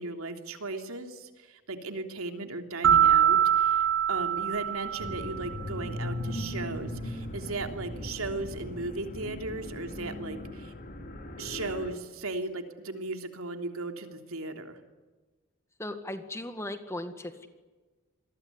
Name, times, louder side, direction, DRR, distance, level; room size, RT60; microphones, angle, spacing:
voice 1, 0.0-10.7 11.4-14.8, right 2 dB, 80° right, 6 dB, 3.2 m, -36 dB
sound 1, 2.8-5.6, right 9 dB, 65° right, 3.3 m, -23 dB
sound 2, 5.0-11.9, left 1 dB, 40° left, 3.5 m, -38 dB
voice 2, 15.8-17.5, left 1 dB, 15° left, 8 dB, 1.9 m, -37 dB
27.0 x 22.5 x 9.8 m, 1.3 s
head